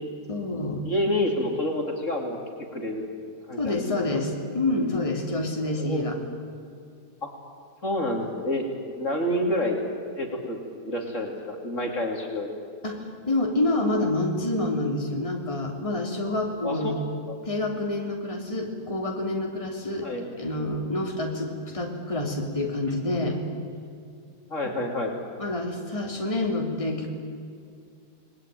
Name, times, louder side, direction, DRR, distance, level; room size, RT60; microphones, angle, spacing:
voice 1, 0.3-0.8 3.6-6.2 12.8-17.0 17.4-20.1 20.4-23.4 25.4-27.1, left 2 dB, 20° left, 1 dB, 3.4 m, -27 dB
voice 2, 0.8-3.0 3.5-4.2 5.8-6.1 7.2-7.3 7.8-8.6 9.0-9.8 10.2-10.6 10.8-12.5 16.6-16.9 17.3-17.4 20.0-20.3 24.5-25.2, left 1 dB, 45° left, 2 dB, 3.4 m, -28 dB
28.5 x 20.5 x 9.3 m, 2.4 s
omnidirectional pair, 1.8 m